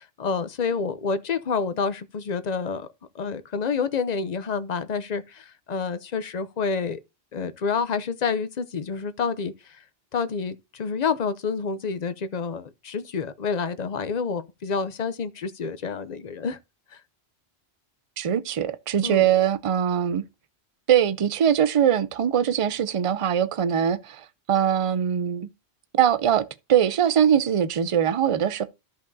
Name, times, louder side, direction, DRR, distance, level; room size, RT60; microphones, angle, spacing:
voice 1, 0.0-2.9 3.1-7.0 7.3-9.5 10.1-16.6 16.9-17.0 19.0-19.3, left 5 dB, 45° left, 0.7 m, -28 dB
voice 2, 18.2-20.2 20.9-25.5 25.9-28.6, right 9 dB, 40° right, 0.5 m, -22 dB
14.0 x 5.2 x 2.7 m
omnidirectional pair, 1.1 m